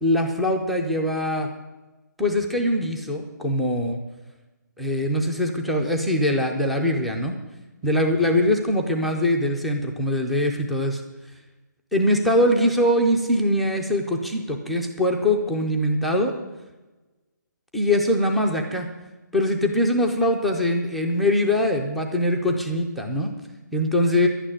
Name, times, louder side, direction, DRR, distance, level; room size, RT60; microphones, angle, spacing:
voice 1, 0.0-1.5 2.2-4.0 4.8-7.4 7.8-11.0 11.9-16.3 17.7-18.9 19.3-23.3 23.7-24.3, left 1 dB, ahead, 1 dB, 0.3 m, -22 dB
11.0 x 8.9 x 9.8 m, 1.2 s
hypercardioid pair, 170°, 11 cm